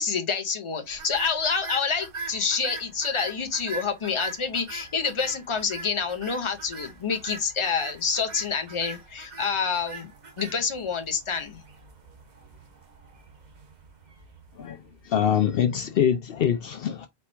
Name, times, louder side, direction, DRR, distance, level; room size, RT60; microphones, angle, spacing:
voice 1, 0.0-10.1 10.4-11.6, left 5 dB, 30° left, 0.8 m, -28 dB
sound 1, 0.9-15.2, right 4 dB, 45° right, 1.0 m, -42 dB
voice 2, 15.0-17.1, left 9 dB, 70° left, 0.8 m, -24 dB
4.4 x 2.3 x 4.3 m
omnidirectional pair, 1.1 m